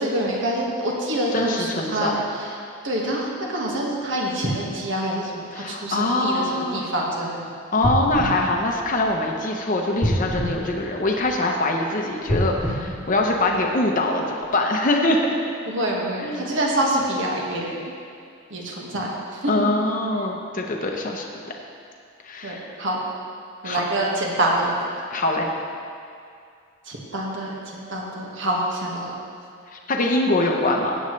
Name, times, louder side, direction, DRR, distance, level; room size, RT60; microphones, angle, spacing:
voice 1, 0.0-2.5 2.8-7.5 15.7-17.7 18.5-19.7 22.4-23.0 23.6-24.8 26.8-29.1, right 1 dB, 60° right, -2 dB, 1.7 m, -26 dB
voice 2, 1.3-2.2 5.5-6.8 7.7-15.4 16.2-16.5 19.5-21.2 22.2-22.7 23.6-23.9 25.1-25.5 29.9-31.0, left 2 dB, 40° left, 1 dB, 0.8 m, -23 dB
sound 1, 7.8-9.4 10.0-11.5 12.2-13.9 14.4-14.5, equal, 25° right, 2.7 m, -27 dB
15.5 x 8.0 x 3.2 m, 2.3 s
head